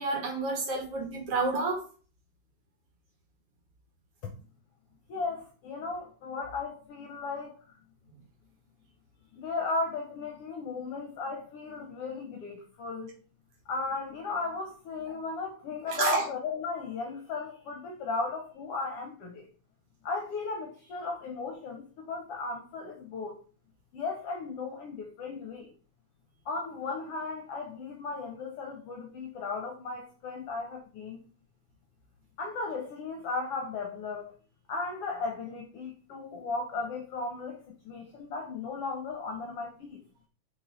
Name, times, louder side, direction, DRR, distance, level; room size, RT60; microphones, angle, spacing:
voice 1, 0.0-1.8 15.9-16.2, right 3 dB, 55° right, 2.4 m, -29 dB
voice 2, 5.1-7.8 9.3-13.2 13.7-19.5 20.0-23.4 23.9-25.7 26.4-31.2 32.4-34.4 34.7-40.0, left 4 dB, 70° left, 1.5 m, -36 dB
5.4 x 4.7 x 3.9 m
omnidirectional pair, 3.5 m